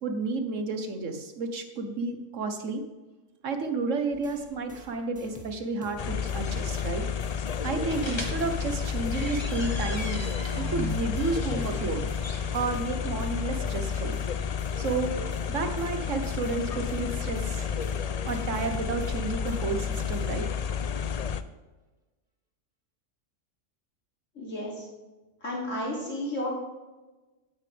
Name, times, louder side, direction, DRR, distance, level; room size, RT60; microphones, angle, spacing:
voice 1, 0.0-2.8 3.4-7.0 7.6-10.3 10.6-12.1 12.5-14.1 14.8-15.2 15.5-17.6 18.2-20.4, right 3 dB, 80° right, 6 dB, 1.5 m, -31 dB
sound 1, 4.1-9.2 9.5-20.6, right 1 dB, 5° right, 2.1 m, -50 dB
sound 2, 6.0-21.4, left 7 dB, 50° left, 0.4 m, -31 dB
sound 3, 7.8-12.8, left 1 dB, 20° left, 1.5 m, -37 dB
voice 2, 24.3-24.9 25.4-26.5, left 1 dB, 80° left, -4 dB, 3.4 m, -32 dB
17.0 x 9.0 x 3.5 m, 1.2 s
omnidirectional pair, 1.3 m